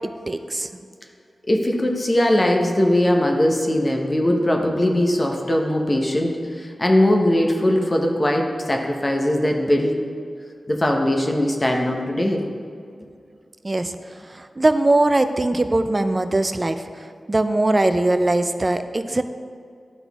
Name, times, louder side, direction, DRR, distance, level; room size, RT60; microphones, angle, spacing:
voice 1, 0.3-0.8 13.6-13.9 14.3-16.8 17.3-19.2, right 2 dB, 35° right, 9 dB, 0.4 m, -20 dB
voice 2, 1.5-9.9 10.7-12.4, left 1 dB, 30° left, 2 dB, 0.9 m, -20 dB
11.5 x 3.9 x 3.5 m, 2.3 s
cardioid pair, 55°, 0 cm